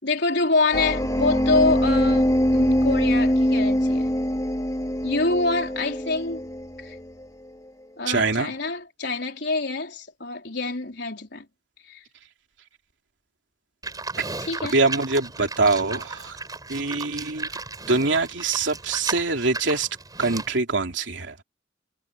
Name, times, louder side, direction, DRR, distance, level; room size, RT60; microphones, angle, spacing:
voice 1, 0.0-4.1 5.0-6.5 6.8-7.0 8.0-11.5 11.8-12.0 14.4-14.8, left 3 dB, 65° left, 4.6 m, -26 dB
sound 1, 0.7-7.2, equal, 20° left, 2.2 m, -23 dB
voice 2, 8.1-8.5 14.2-14.3 14.7-16.4 16.7-17.5 17.9-19.9 20.2-21.3, right 3 dB, 90° right, 3.1 m, -24 dB
Livestock farm animals working animals, 13.8-20.6, right 3 dB, 20° right, 5.6 m, -35 dB
head